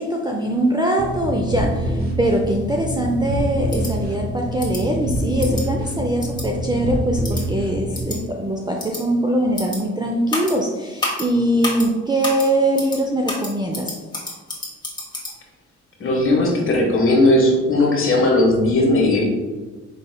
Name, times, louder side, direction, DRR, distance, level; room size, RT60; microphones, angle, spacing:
voice 1, 0.0-13.9, right 1 dB, 15° right, 1 dB, 0.4 m, -22 dB
sound 1, 1.0-8.0, equal, 30° right, 1.3 m, -26 dB
sound 2, 3.7-3.9 4.6-4.8 5.4-5.6 6.2-6.5 7.2-7.4 7.9-8.2 8.8-9.0 9.6-9.8 10.3-10.5 11.0-11.3 11.6-11.9 12.2-12.5 12.8-13.0 13.3-15.3, left 2 dB, 15° left, 1.4 m, -29 dB
voice 2, 16.0-19.2, left 1 dB, 45° left, -1 dB, 1.3 m, -17 dB
5.0 x 3.9 x 2.2 m, 1.3 s
cardioid pair, 90°, 30 cm